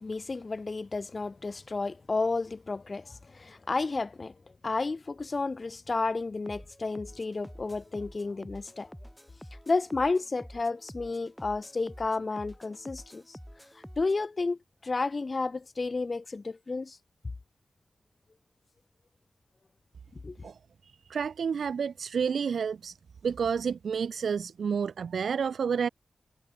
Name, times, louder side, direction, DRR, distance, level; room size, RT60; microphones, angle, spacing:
voice 1, 0.0-4.3 4.6-8.9 9.7-13.4 14.0-17.0 20.2-20.4, left 3 dB, 35° left, 0.4 m, -31 dB
sound 1, 6.5-14.2, equal, ahead, 4.8 m, -48 dB
voice 2, 21.1-23.0 23.2-25.9, right 6 dB, 90° right, 0.5 m, -30 dB
wide cardioid pair, 130°, 0 cm